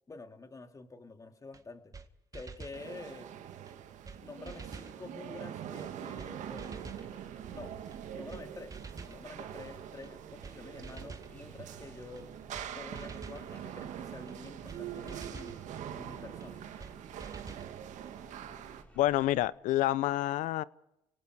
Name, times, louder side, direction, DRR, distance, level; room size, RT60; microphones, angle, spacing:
voice 1, 0.1-1.9 2.3-3.3 4.2-7.0 7.5-7.8 8.1-8.8 9.0-12.3 12.8-15.6 15.9-16.6, left 3 dB, 25° left, 6 dB, 2.5 m, -48 dB
sound 1, 1.5-1.6 1.9-2.1 2.3-2.8 3.7-3.8 4.1-4.2 4.5-5.0 5.8-5.9 6.2-6.3 6.6-7.1 7.9-8.0 8.3-8.4 8.7-9.2 10.0-10.1 10.4-10.6 10.8-11.3 12.2-12.3 12.5-12.7 13.0-13.4 14.3-14.4 14.7-14.8 15.1-15.6 16.4-16.5 16.8-16.9 17.2-17.7, right 4 dB, 25° right, 1.7 m, -47 dB
sound 2, 2.7-18.8, right 10 dB, 70° right, 1.9 m, -44 dB
sound 3, 6.8-19.5, right 1 dB, 10° left, 5.3 m, -58 dB
voice 2, 19.0-20.6, left 15 dB, 75° left, 19 dB, 0.7 m, -28 dB
29.5 x 18.5 x 4.8 m, 0.84 s
supercardioid pair, 70°, 13 cm